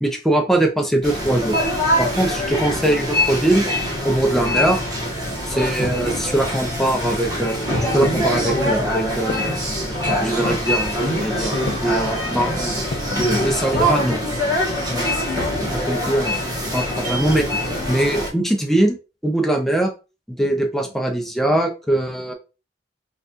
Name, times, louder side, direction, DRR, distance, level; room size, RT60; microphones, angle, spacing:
voice 1, 0.0-1.6 2.0-3.8 4.0-4.8 5.5-7.6 7.9-9.6 10.2-14.2 14.9-16.4 16.7-17.5 17.9-19.0 19.2-19.9 20.3-22.3, right 1 dB, ahead, 2 dB, 0.5 m, -22 dB
sound 1, 1.0-18.3, equal, 20° right, 1.0 m, -23 dB
sound 2, 9.3-9.8 10.4-10.9 11.7-12.1 12.9-13.3 13.9-14.5 14.7-14.8, left 4 dB, 75° left, 0.4 m, -34 dB
4.0 x 2.4 x 2.5 m, 0.30 s
head